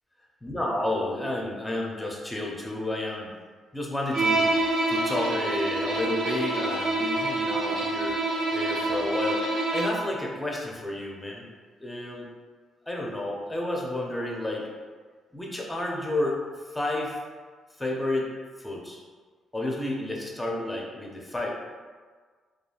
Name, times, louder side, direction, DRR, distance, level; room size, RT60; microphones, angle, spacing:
voice 1, 0.4-3.3 3.7-8.2 8.5-9.4 9.7-11.5 11.8-12.3 12.9-14.7 15.3-16.4 16.7-17.2 17.8-18.3 18.6-19.0 19.5-21.6, left 1 dB, 10° left, -1 dB, 0.5 m, -31 dB
Bowed string instrument, 4.1-10.1, right 2 dB, 85° right, 0.7 m, -27 dB
3.0 x 2.3 x 2.3 m, 1.5 s
cardioid pair, 90°, 0 cm